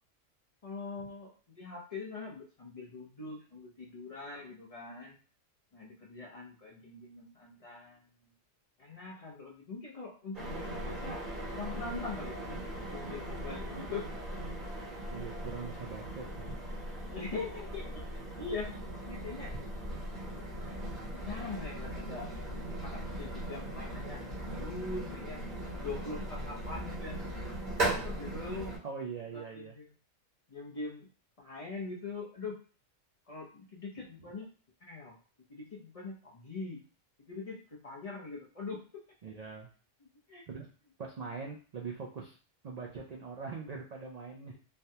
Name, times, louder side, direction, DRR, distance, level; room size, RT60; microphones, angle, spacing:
voice 1, 0.6-5.2 5.7-8.0 8.8-11.2 11.5-12.6 12.9-14.0 17.1-17.9 18.3-18.7 19.0-19.5 21.2-22.3 22.6-24.2 24.6-25.4 25.8-28.7 29.3-29.9 30.5-31.1 31.4-32.5 33.3-34.5 34.8-35.1 35.5-36.8 37.3-38.8 40.3-40.4, left 3 dB, 35° left, -3 dB, 0.6 m, -42 dB
sound 1, 10.3-28.8, right 1 dB, 45° right, 1.0 m, -39 dB
voice 2, 15.1-16.8 19.5-19.7 28.8-29.8 34.0-34.3 39.2-39.7 40.5-40.7 41.0-42.4 42.6-44.6, right 5 dB, 75° right, -1 dB, 0.3 m, -42 dB
3.3 x 2.2 x 2.7 m, 0.38 s
omnidirectional pair, 1.3 m